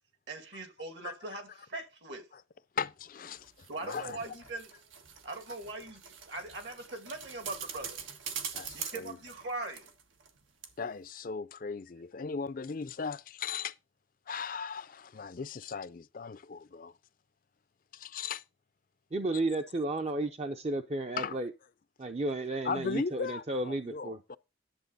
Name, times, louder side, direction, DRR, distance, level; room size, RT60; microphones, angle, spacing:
voice 1, 0.3-2.3 3.7-4.7 5.2-8.0 8.7-9.9, right 2 dB, 65° right, 2.3 m, -41 dB
voice 2, 2.8-3.5 3.8-4.4 8.5-9.2 10.8-13.7 14.3-16.9 17.9-18.4 21.2-21.4 22.6-24.4, left 5 dB, 45° left, 0.4 m, -37 dB
sound 1, 3.4-10.4 10.6-10.7, right 7 dB, 85° right, 1.6 m, -44 dB
voice 3, 19.1-21.5 22.0-24.2, right 2 dB, 35° right, 0.6 m, -33 dB
11.5 x 7.3 x 4.0 m
head